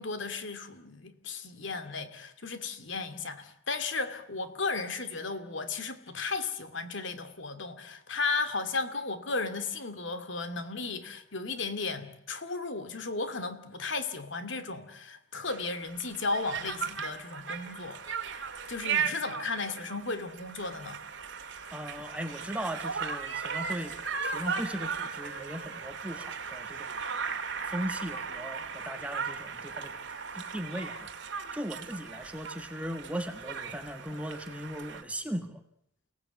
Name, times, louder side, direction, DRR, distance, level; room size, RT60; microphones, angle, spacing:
voice 1, 0.0-18.0 18.7-21.0, left 3 dB, 60° left, 2.5 m, -35 dB
Conversation, 15.5-35.0, right 6 dB, 60° right, 2.2 m, -37 dB
voice 2, 21.7-24.0 24.2-26.9 27.6-29.9 30.3-35.6, equal, 5° right, 1.5 m, -38 dB
29.5 x 18.0 x 8.3 m
head